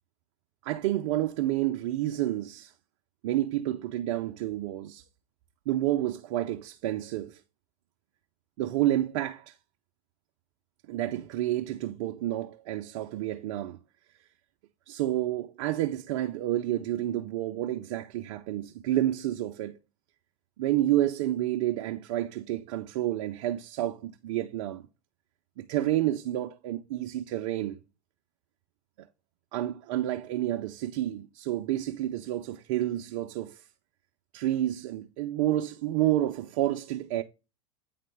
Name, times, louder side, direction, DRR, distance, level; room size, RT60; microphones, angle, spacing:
voice 1, 0.6-2.7 3.2-5.0 5.7-7.4 8.6-9.5 10.9-13.8 14.9-19.8 20.6-24.9 25.6-27.8 29.0-29.1 29.5-33.6 34.3-37.2, right 13 dB, 60° right, 0.6 m, -29 dB
9.4 x 3.7 x 3.4 m
hypercardioid pair, 90°, 18 cm